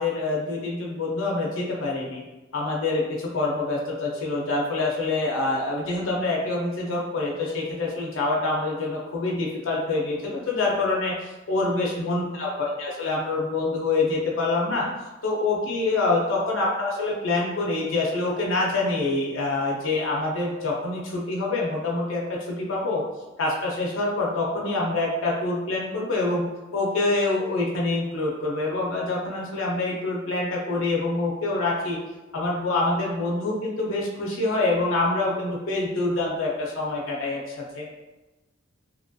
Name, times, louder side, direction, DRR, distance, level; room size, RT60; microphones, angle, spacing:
voice 1, 0.0-2.2 2.5-14.9 15.2-23.0 23.4-26.4 26.7-32.0 32.3-37.9, left 2 dB, 75° left, -3 dB, 0.5 m, -26 dB
2.8 x 2.2 x 2.6 m, 1.1 s
head